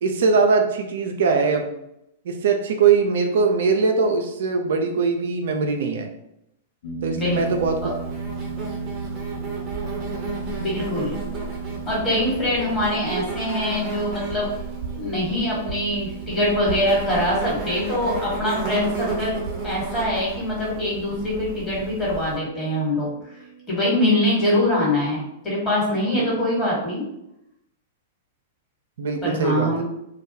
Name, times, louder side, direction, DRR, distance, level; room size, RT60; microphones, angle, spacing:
voice 1, 0.0-1.7 2.3-6.1 7.0-7.8 29.0-29.8, right 5 dB, 65° right, 4 dB, 0.3 m, -21 dB
sound 1, 6.8-25.3, right 5 dB, 65° left, 0.7 m, -37 dB
Insect, 7.2-22.4, right 3 dB, 35° right, 0.7 m, -33 dB
voice 2, 10.6-11.2 11.8-14.5 14.9-19.3 19.6-23.1 23.7-27.0 29.2-29.8, left 1 dB, 20° left, -5 dB, 1.3 m, -23 dB
2.2 x 2.1 x 2.7 m, 0.83 s
hypercardioid pair, 105°, 0 cm